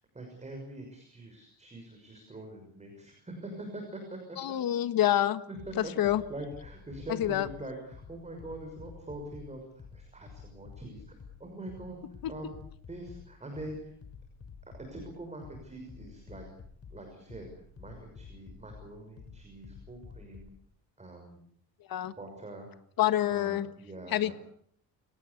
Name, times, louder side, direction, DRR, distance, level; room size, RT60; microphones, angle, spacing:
voice 1, 0.1-4.6 5.5-12.0 12.3-12.6 12.9-13.9 14.9-16.5 16.9-17.5 17.8-20.5 21.0-21.5 22.0-22.7 23.3-24.3, right 1 dB, 15° right, 3 dB, 6.2 m, -44 dB
voice 2, 4.4-5.4 5.8-6.2 7.2-7.5 21.9-22.1 23.0-23.7 24.1-24.3, left 12 dB, 60° left, 12 dB, 1.6 m, -27 dB
sound 1, 5.6-20.6, left 5 dB, 35° left, 3.4 m, -50 dB
30.0 x 18.0 x 8.4 m, 0.65 s
cardioid pair, 145°, 40 cm